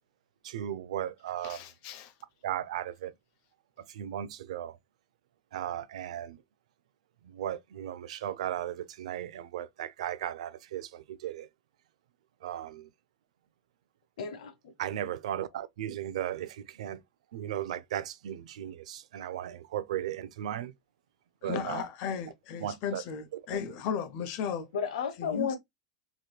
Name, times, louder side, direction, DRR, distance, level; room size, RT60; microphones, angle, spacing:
voice 1, 0.4-1.6 2.4-3.1 3.9-4.8 5.5-6.4 7.2-11.5 12.4-12.9 14.8-17.0 17.3-20.7 21.4-21.8 22.6-23.0 23.5-23.6, right 11 dB, 80° right, 0.4 m, -36 dB
voice 2, 1.4-2.1 21.4-24.7 25.1-25.6, left 7 dB, 45° left, 0.7 m, -35 dB
voice 3, 14.2-14.7 24.7-25.6, left 6 dB, 80° left, 1.1 m, -33 dB
3.3 x 2.9 x 2.3 m
supercardioid pair, 155°, 3 cm